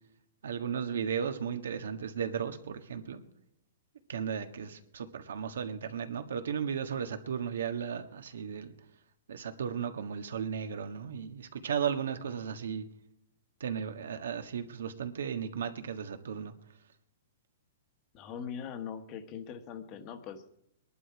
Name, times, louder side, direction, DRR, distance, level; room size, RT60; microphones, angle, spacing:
voice 1, 0.4-3.2 4.1-8.7 9.3-12.8 13.6-16.5, right 7 dB, 85° right, 8 dB, 1.5 m, -35 dB
voice 2, 18.1-20.4, left 7 dB, 30° left, 9 dB, 1.2 m, -41 dB
21.0 x 11.0 x 4.8 m, 0.79 s
hypercardioid pair, 160°, 0 cm